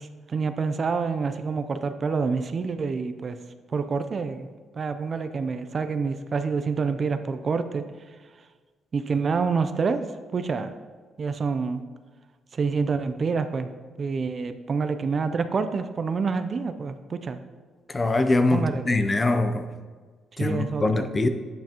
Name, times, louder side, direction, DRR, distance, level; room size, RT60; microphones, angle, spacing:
voice 1, 0.0-3.4 3.7-8.1 8.9-10.0 10.3-10.7 11.2-11.8 12.5-13.7 14.0-17.4 18.5-19.0 20.4-21.3, right 5 dB, 45° right, 0.4 m, -27 dB
voice 2, 17.9-19.7 20.4-21.3, left 2 dB, 25° left, 0.5 m, -23 dB
8.7 x 5.9 x 2.9 m
cardioid pair, 90°, 0 cm